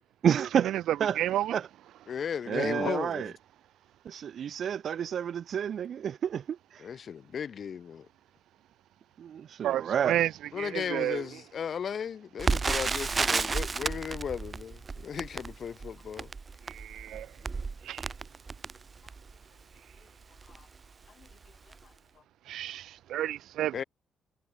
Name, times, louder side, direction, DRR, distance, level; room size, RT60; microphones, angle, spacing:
voice 1, 0.2-1.2 1.5-1.7 2.5-3.3 4.0-6.9 9.2-10.2, right 8 dB, 60° right, 1.2 m, -30 dB
voice 2, 1.2-1.5 9.6-10.3 10.6-11.2 16.7-17.3 17.9-18.1 22.5-23.7, right 12 dB, 80° right, 0.7 m, -31 dB
voice 3, 2.1-3.3 6.8-8.1 10.5-16.3 17.4-17.5 20.5-20.7 21.2-21.3 23.7-23.8, left 7 dB, 55° left, 3.6 m, -36 dB
Crackle, 12.4-19.4 20.0-20.1 20.4-20.6 21.2-21.5 21.7-21.8, right 4 dB, 30° right, 3.5 m, -32 dB
cardioid pair, 90°, 0 cm